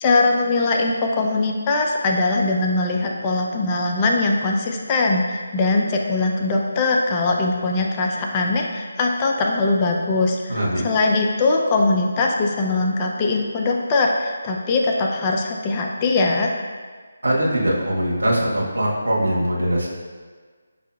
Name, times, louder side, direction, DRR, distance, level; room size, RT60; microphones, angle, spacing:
voice 1, 0.0-16.5, left 3 dB, 20° left, 0 dB, 0.3 m, -21 dB
voice 2, 10.5-10.8 17.2-19.9, right 1 dB, 75° right, -5 dB, 1.2 m, -21 dB
6.0 x 2.7 x 2.2 m, 1.5 s
figure-of-eight pair, 155°, 0 cm